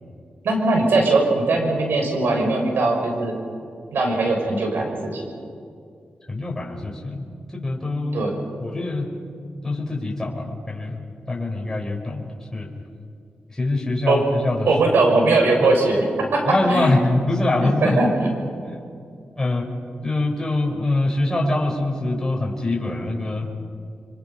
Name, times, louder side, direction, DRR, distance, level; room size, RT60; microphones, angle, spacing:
voice 1, 0.4-3.3 3.9-5.2 8.1-8.3 14.1-14.2 14.7-16.9 17.6-18.3, right 2 dB, 85° right, 1 dB, 6.1 m, -20 dB
voice 2, 6.3-8.3 8.6-9.1 9.6-11.0 11.3-12.7 13.5-14.7 15.6-15.7 16.5-18.0 18.6-18.8 19.4-19.7 20.0-23.5, left 2 dB, 15° left, -1 dB, 4.8 m, -24 dB
28.5 x 25.0 x 5.7 m, 2.3 s
cardioid pair, 70°, 4 cm